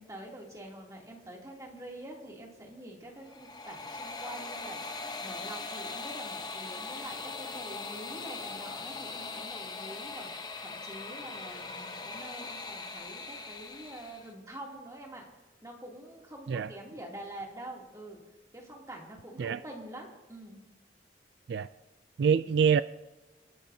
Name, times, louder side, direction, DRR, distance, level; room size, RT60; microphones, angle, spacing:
voice 1, 0.0-15.3 15.6-18.2 18.5-20.7, right 1 dB, 20° right, -2 dB, 2.7 m, -46 dB
sound 1, 3.2-14.3, left 3 dB, 20° left, 0.8 m, -40 dB
voice 2, 22.2-22.8, right 7 dB, 70° right, 14 dB, 0.3 m, -25 dB
28.0 x 11.5 x 2.7 m, 1.2 s
head